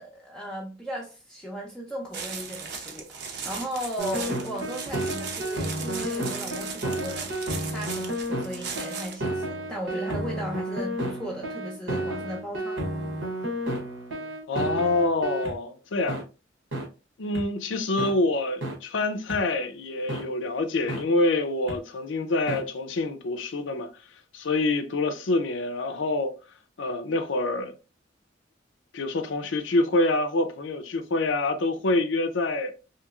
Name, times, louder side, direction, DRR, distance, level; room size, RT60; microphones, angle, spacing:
voice 1, 0.0-7.3 7.7-12.8, equal, 5° left, 0.5 m, -36 dB
sound 1, 2.1-9.3, right 5 dB, 60° right, 0.6 m, -37 dB
sound 2, 4.0-15.5 16.1-16.2 16.7-16.8 17.3-17.4 18.0-18.1 18.6-18.7 19.3-19.4 20.1-20.2 20.9-21.0 21.7-21.8 22.5-22.6, right 1 dB, 80° right, 1.0 m, -31 dB
voice 2, 14.5-16.2 17.2-23.9 24.3-26.3 26.8-27.7 28.9-32.7, left 2 dB, 85° left, 0.5 m, -26 dB
3.0 x 2.8 x 2.4 m
head